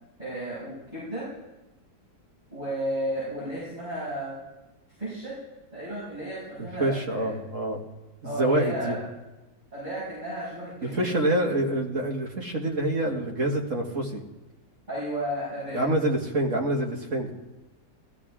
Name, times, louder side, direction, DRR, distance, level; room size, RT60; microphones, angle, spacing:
voice 1, 0.2-1.3 2.5-4.3 5.0-5.3 5.7-7.3 8.2-9.0 9.7-11.2 14.9-15.8, right 1 dB, 25° right, -10 dB, 6.5 m, -33 dB
voice 2, 6.6-7.8 8.2-9.0 10.8-14.2 15.7-17.3, right 1 dB, 45° right, 0 dB, 2.3 m, -26 dB
18.0 x 14.0 x 3.7 m, 1.0 s
omnidirectional pair, 1.8 m